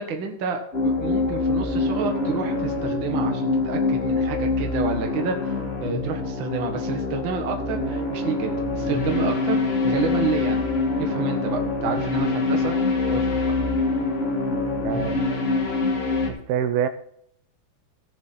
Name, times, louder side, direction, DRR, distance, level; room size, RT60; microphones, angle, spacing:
voice 1, 0.0-5.5 5.8-10.6 11.0-12.7 13.1-13.5, right 4 dB, 55° right, 3 dB, 1.4 m, -29 dB
sound 1, 0.7-16.3, left 3 dB, 45° left, 0.7 m, -25 dB
voice 2, 14.8-15.2 16.5-16.9, right 9 dB, 80° right, 10 dB, 2.7 m, -24 dB
15.5 x 7.0 x 4.1 m, 0.68 s
omnidirectional pair, 4.6 m